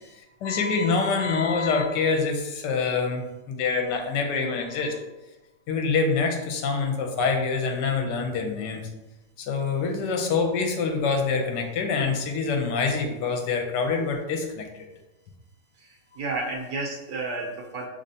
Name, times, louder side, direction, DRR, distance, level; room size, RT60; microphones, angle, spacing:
voice 1, 0.4-5.0 5.7-8.9 9.4-14.6, left 4 dB, 80° left, 3 dB, 1.3 m, -25 dB
voice 2, 15.8-17.9, right 3 dB, 70° right, -1 dB, 1.4 m, -32 dB
5.5 x 3.3 x 2.7 m, 1.1 s
omnidirectional pair, 1.9 m